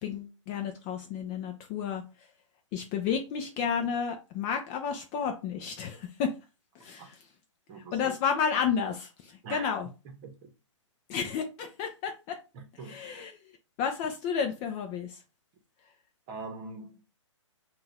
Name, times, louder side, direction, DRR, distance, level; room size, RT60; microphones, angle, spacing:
voice 1, 0.0-2.0 2.7-6.3 6.8-7.2 7.9-9.9 11.1-12.4 12.8-13.4 13.8-15.2, left 7 dB, 25° left, 0.5 m, -31 dB
voice 2, 7.7-8.2 9.4-9.7 10.2-10.5 12.5-13.0 16.3-17.0, right 4 dB, 30° right, 1.0 m, -42 dB
3.8 x 2.4 x 4.3 m
hypercardioid pair, 135°, 16 cm